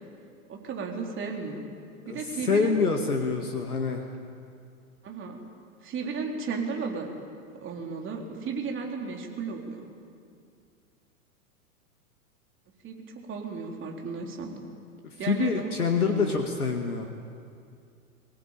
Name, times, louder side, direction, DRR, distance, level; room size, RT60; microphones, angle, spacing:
voice 1, 0.5-1.6 2.0-2.8 5.0-5.4 5.8-7.1 7.6-9.9 12.8-14.5 15.2-15.7 16.0-16.4, right 5 dB, 25° right, 1 dB, 4.0 m, -34 dB
voice 2, 2.5-4.1 15.0-17.1, left 4 dB, 80° left, 4 dB, 2.1 m, -26 dB
23.0 x 18.5 x 9.0 m, 2.4 s
figure-of-eight pair, 95°, 44 cm